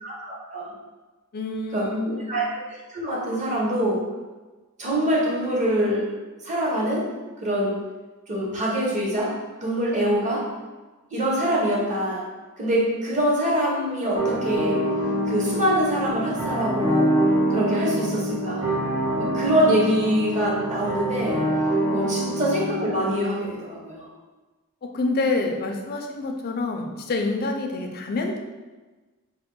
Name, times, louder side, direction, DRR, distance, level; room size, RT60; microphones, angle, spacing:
voice 1, 0.0-0.7 1.7-4.0 4.8-6.1 6.4-7.1 7.4-7.8 8.3-9.3 9.6-10.5 11.1-12.2 12.6-14.8 15.3-17.1 17.5-18.7 19.2-21.4 21.9-24.0, equal, 35° right, -4 dB, 0.8 m, -24 dB
voice 2, 1.3-2.3 22.0-22.2 24.8-28.4, left 3 dB, 45° left, 3 dB, 0.4 m, -27 dB
sound 1, 14.1-23.1, right 1 dB, 85° right, 1.2 m, -25 dB
3.6 x 2.1 x 3.7 m, 1.2 s
head